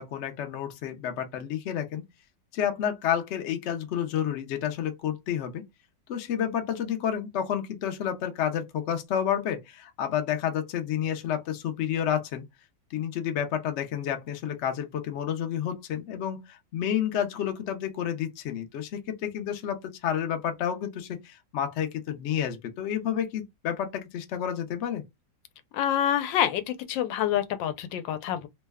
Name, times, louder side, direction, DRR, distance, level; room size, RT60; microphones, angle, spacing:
voice 1, 0.0-2.0 2.5-5.6 6.1-12.4 12.9-25.0, left 9 dB, 65° left, 0.7 m, -30 dB
voice 2, 25.7-28.5, left 10 dB, 85° left, 1.3 m, -27 dB
3.0 x 2.1 x 3.4 m
omnidirectional pair, 2.0 m